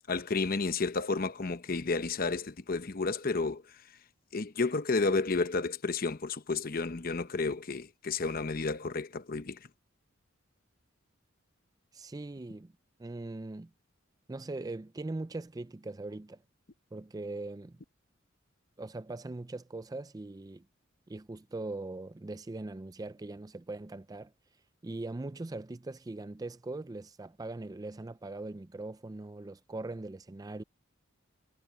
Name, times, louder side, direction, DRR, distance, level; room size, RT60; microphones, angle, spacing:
voice 1, 0.1-3.8 4.3-9.6, left 3 dB, 45° left, 0.9 m, -31 dB
voice 2, 11.9-12.7 13.0-13.7 14.3-16.4 16.9-17.7 18.8-20.6 21.1-24.3 24.8-30.6, right 2 dB, 20° right, 0.4 m, -40 dB
head